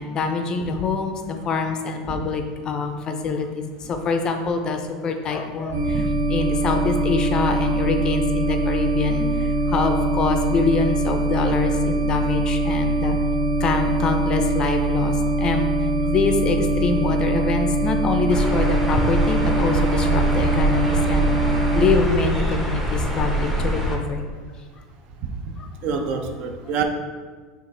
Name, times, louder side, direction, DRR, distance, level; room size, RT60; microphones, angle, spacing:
voice 1, 0.0-3.5 3.9-13.2 13.6-15.7 16.1-24.2 25.6-25.7, left 4 dB, 30° left, 5 dB, 0.4 m, -25 dB
sound 1, 5.7-21.9, right 2 dB, 75° right, 0.9 m, -22 dB
sound 2, 18.3-24.0, right 1 dB, 5° right, 0.6 m, -24 dB
voice 2, 25.8-26.8, right 6 dB, 45° right, 5 dB, 0.5 m, -26 dB
6.3 x 2.5 x 3.2 m, 1.5 s
supercardioid pair, 140°, 2 cm